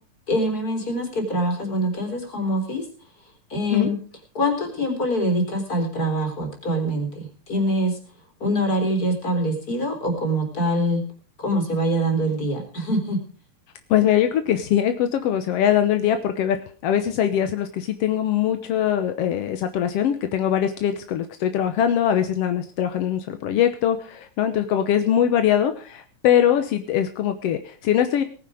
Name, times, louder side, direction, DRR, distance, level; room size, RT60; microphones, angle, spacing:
voice 1, 0.3-2.8 3.5-4.0 4.3-8.0 8.4-11.0 11.4-13.2, equal, 25° left, 4 dB, 4.0 m, -24 dB
voice 2, 13.9-16.6 16.8-28.2, left 10 dB, 70° left, 8 dB, 1.5 m, -22 dB
18.5 x 10.0 x 4.9 m, 0.41 s
omnidirectional pair, 3.9 m